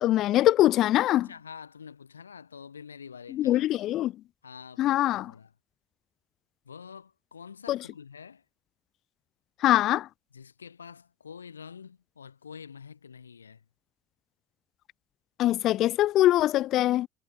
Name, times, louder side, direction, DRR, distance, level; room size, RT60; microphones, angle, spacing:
voice 1, 0.0-1.3 3.3-4.1 4.8-5.3 7.7-7.8 9.6-10.1 15.4-17.1, left 14 dB, 60° left, 1.1 m, -23 dB
voice 2, 1.2-3.7 4.4-5.5 6.6-8.4 10.3-13.6, left 6 dB, 90° left, 3.2 m, -46 dB
hypercardioid pair, 55°, 0 cm